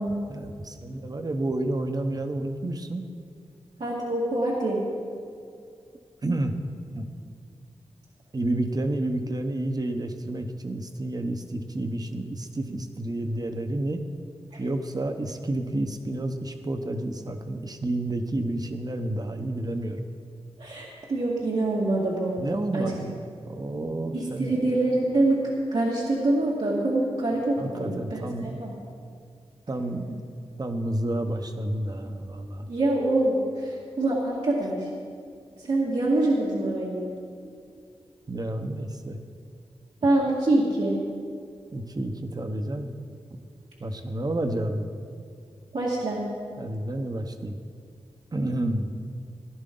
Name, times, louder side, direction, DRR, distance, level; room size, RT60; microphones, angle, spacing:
voice 1, 0.3-3.1 6.2-6.5 6.9-7.1 8.3-14.0 14.6-20.1 22.4-23.2 23.5-24.5 27.6-28.6 29.7-30.3 30.6-32.7 38.3-39.2 41.7-43.0 43.8-44.9 46.6-47.6 48.3-48.9, right 1 dB, 35° right, 6 dB, 1.0 m, -30 dB
voice 2, 3.8-4.8 14.5-14.6 20.6-22.4 22.7-22.8 24.1-28.7 32.7-34.9 35.6-37.1 40.0-41.0 45.7-46.2, right 2 dB, 75° right, -7 dB, 2.2 m, -25 dB
17.0 x 12.0 x 3.9 m, 2.4 s
wide cardioid pair, 100°, 11 cm